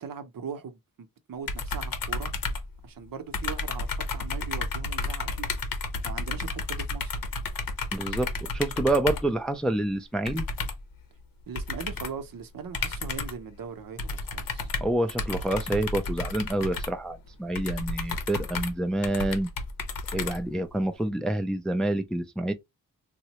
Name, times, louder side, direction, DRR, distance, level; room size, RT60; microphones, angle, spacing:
voice 1, 0.0-2.4 2.8-5.6 5.9-7.2 11.5-14.7, right 6 dB, 70° right, 0.7 m, -40 dB
sound 1, 1.5-3.1 3.3-9.4 10.3-10.9 11.6-12.2 12.7-13.5 14.0-20.8, left 3 dB, 75° left, 0.7 m, -32 dB
voice 2, 7.9-10.5 14.8-19.5 20.1-22.5, right 1 dB, ahead, 0.3 m, -28 dB
3.6 x 2.1 x 2.8 m
wide cardioid pair, 130°, 35 cm